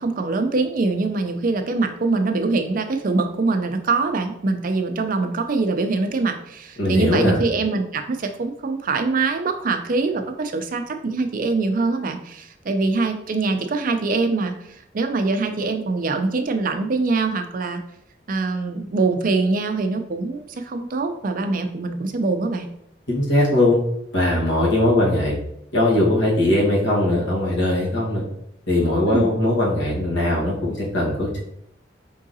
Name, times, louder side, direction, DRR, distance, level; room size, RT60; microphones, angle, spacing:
voice 1, 0.0-17.8 18.3-22.7 29.1-29.3, right 3 dB, 50° right, 6 dB, 0.5 m, -23 dB
voice 2, 6.8-7.4 23.1-23.8 24.1-25.3 25.7-28.2 28.7-31.4, left 1 dB, 85° left, -4 dB, 1.5 m, -20 dB
4.6 x 3.7 x 2.7 m, 0.75 s
head